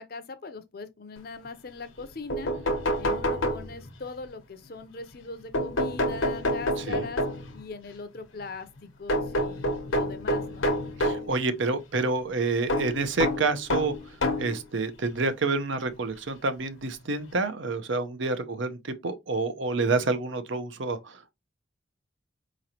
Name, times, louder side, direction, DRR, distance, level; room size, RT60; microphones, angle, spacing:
voice 1, 0.0-2.5 3.0-7.2 7.5-10.7, left 3 dB, 50° left, 0.6 m, -41 dB
sound 1, 2.0-2.1 2.3-4.1 5.5-7.6 9.1-11.3 12.7-14.6 15.4-15.5 16.9-17.0 17.3-17.4, left 1 dB, 85° left, 0.9 m, -28 dB
voice 2, 6.8-7.1 11.0-13.9 14.4-21.3, right 3 dB, 70° right, 0.7 m, -28 dB
4.9 x 3.1 x 2.8 m
head